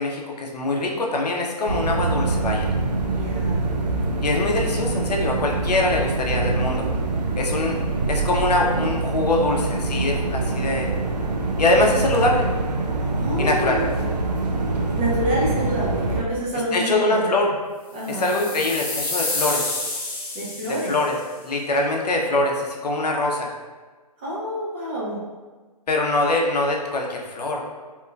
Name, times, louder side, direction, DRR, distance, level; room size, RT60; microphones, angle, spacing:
voice 1, 0.0-2.7 4.2-6.9 7.4-7.8 8.1-10.9 11.6-12.5 13.4-13.8 16.7-17.5 18.1-19.8 20.7-21.2 21.4-23.5 25.9-27.6, left 2 dB, 80° left, 0 dB, 0.5 m, -23 dB
sound 1, 1.7-16.2, right 3 dB, 90° right, 0.4 m, -25 dB
voice 2, 3.0-3.7 13.2-14.1 15.0-17.3 17.9-18.3 20.3-20.9 24.2-25.2, equal, 15° right, -6 dB, 0.3 m, -27 dB
sound 2, 18.0-21.2, left 2 dB, 35° left, 0.7 m, -29 dB
2.9 x 2.2 x 2.3 m, 1.3 s
figure-of-eight pair, 140°, 20 cm